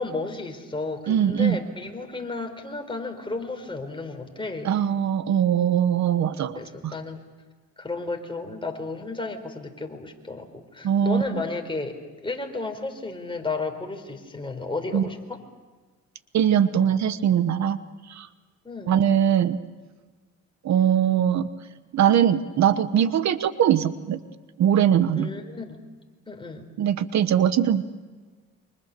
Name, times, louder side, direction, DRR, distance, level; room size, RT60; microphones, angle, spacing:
voice 1, 0.0-4.7 6.5-7.2 7.8-15.4 18.6-19.0 25.2-25.8 26.3-26.6, left 3 dB, 15° left, 4 dB, 4.2 m, -33 dB
voice 2, 1.1-1.6 4.6-6.9 10.8-11.4 14.9-15.1 16.3-17.8 18.1-18.3 18.9-19.6 20.6-21.5 21.9-24.2 24.6-25.3 26.8-27.8, right 9 dB, 65° right, 12 dB, 1.2 m, -21 dB
28.5 x 25.5 x 6.8 m, 1.4 s
cardioid pair, 90°, 30 cm